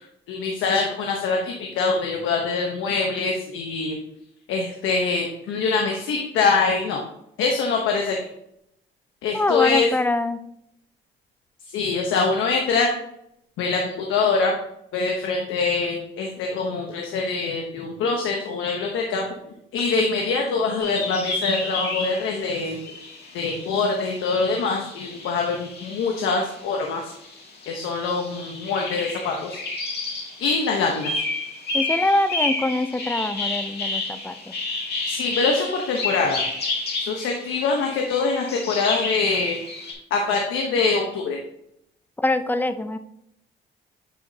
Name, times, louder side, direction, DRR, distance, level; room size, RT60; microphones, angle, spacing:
voice 1, 0.3-4.0 4.5-7.0 7.4-8.3 9.2-9.9 11.7-12.9 13.6-14.5 14.9-19.3 19.7-22.8 23.3-27.1 27.7-29.6 30.4-31.1 35.1-36.4 37.0-39.6 40.1-41.4, left 4 dB, 85° left, 1 dB, 1.0 m, -24 dB
voice 2, 9.3-10.4 31.7-34.5 42.2-43.0, left 2 dB, 10° left, 11 dB, 0.5 m, -24 dB
sound 1, 20.8-26.6 27.0-39.9, left 3 dB, 55° left, 2.1 m, -31 dB
9.3 x 5.0 x 2.8 m, 0.78 s
cardioid pair, 90°, 20 cm